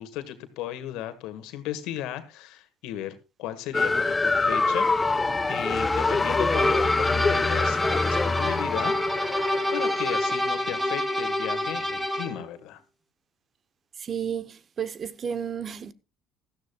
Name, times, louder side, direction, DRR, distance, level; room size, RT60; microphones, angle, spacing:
voice 1, 0.0-4.9 5.5-9.0 9.7-12.8, left 12 dB, 75° left, 1.7 m, -35 dB
sound 1, 3.7-10.3, left 3 dB, 20° left, 0.8 m, -25 dB
sound 2, 6.5-12.4, left 1 dB, 10° right, 2.8 m, -27 dB
voice 2, 14.0-15.9, right 8 dB, 40° right, 0.8 m, -32 dB
16.5 x 13.0 x 2.3 m
supercardioid pair, 85°, 0 cm